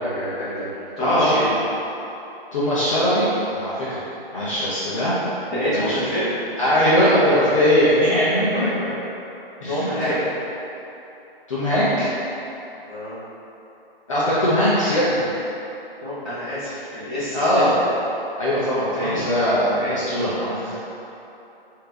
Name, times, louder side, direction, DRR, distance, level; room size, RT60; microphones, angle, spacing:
voice 1, 0.0-1.5 5.5-6.3 8.5-8.9 9.6-10.2 12.9-13.2 16.0-17.8 18.9-19.3 19.7-20.0, equal, ahead, -20 dB, 1.1 m, -27 dB
voice 2, 1.0-1.3 2.5-3.3 3.5-4.0 4.3-5.1 5.7-5.9 6.6-8.7 9.6-10.2 11.5-12.1 14.1-15.3 17.3-17.7 18.4-20.8, equal, 35° left, -10 dB, 0.7 m, -20 dB
5.1 x 2.9 x 3.5 m, 2.9 s
hypercardioid pair, 165°, 30 cm